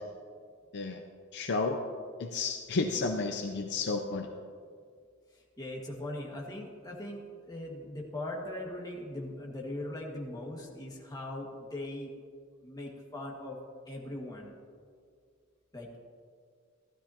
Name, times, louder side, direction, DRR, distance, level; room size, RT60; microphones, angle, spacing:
voice 1, 1.3-1.8 2.2-4.3, left 3 dB, 60° left, 5 dB, 0.6 m, -31 dB
voice 2, 5.3-12.1 12.6-13.6 13.9-14.5 15.7-15.9, left 1 dB, 20° left, -2 dB, 1.8 m, -40 dB
15.5 x 12.5 x 2.9 m, 2.1 s
head